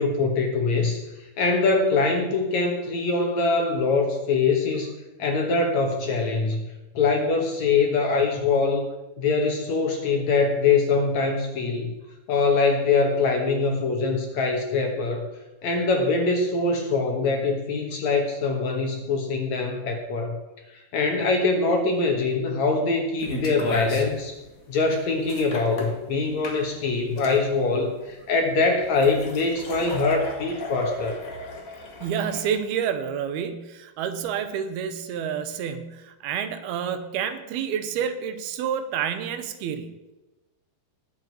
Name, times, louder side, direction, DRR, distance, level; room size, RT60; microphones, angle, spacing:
voice 1, 0.0-4.9 5.2-6.7 6.9-8.9 9.2-11.9 12.3-15.3 15.6-20.4 20.7-24.3 24.7-31.2, left 4 dB, 60° left, 3 dB, 2.2 m, -23 dB
sound 1, 23.2-32.6, left 2 dB, 80° left, 0.7 m, -35 dB
voice 2, 32.0-39.9, right 8 dB, 80° right, 10 dB, 2.9 m, -29 dB
19.0 x 7.9 x 4.6 m, 1.1 s
omnidirectional pair, 4.5 m